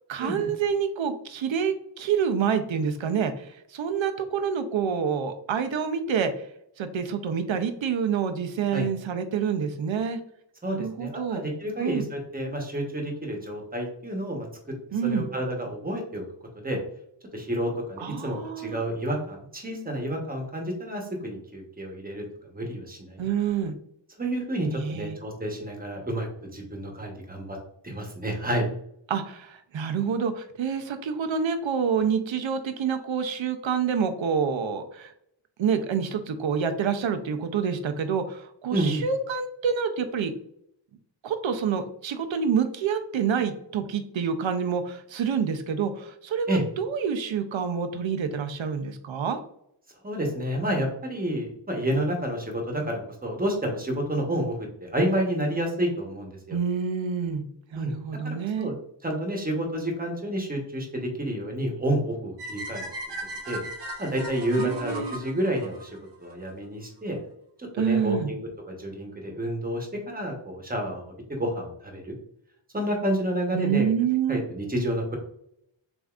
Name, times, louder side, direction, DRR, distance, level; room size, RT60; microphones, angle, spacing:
voice 1, 0.1-6.3 6.8-10.2 10.6-11.4 11.8-12.1 14.9-15.3 18.0-18.8 23.2-23.8 24.8-25.2 29.1-35.1 35.6-40.3 41.2-49.4 56.5-57.5 57.7-58.7 64.6-65.1 67.8-68.3 73.5-74.5, right 7 dB, 75° right, 8 dB, 0.7 m, -27 dB
voice 2, 10.6-14.5 15.1-16.2 16.6-16.8 17.3-22.2 22.5-23.3 24.2-27.6 27.8-28.7 38.7-39.0 46.5-46.6 50.0-56.6 57.7-57.9 58.2-58.7 59.0-62.9 63.5-63.6 64.0-65.9 66.2-67.2 67.6-71.0 71.3-72.1 72.7-73.9 74.3-75.2, right 1 dB, 20° right, 1 dB, 0.9 m, -29 dB
sound 1, 62.4-66.5, right 1 dB, 60° right, 1.0 m, -37 dB
6.8 x 2.6 x 2.4 m, 0.72 s
wide cardioid pair, 175°, 46 cm